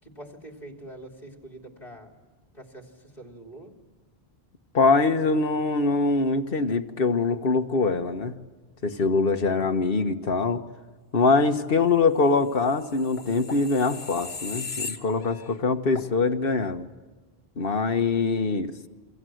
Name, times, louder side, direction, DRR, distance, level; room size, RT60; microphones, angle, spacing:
voice 1, 0.0-2.2 2.5-3.7, right 1 dB, 45° left, 3 dB, 3.4 m, -44 dB
voice 2, 4.7-8.4 8.8-10.6 11.1-16.9 17.6-18.7, left 4 dB, 65° left, 7 dB, 1.5 m, -23 dB
sound 1, 12.7-15.6 16.0-16.1, left 4 dB, 85° left, 1.8 m, -37 dB
28.0 x 24.0 x 7.9 m, 1.3 s
omnidirectional pair, 1.0 m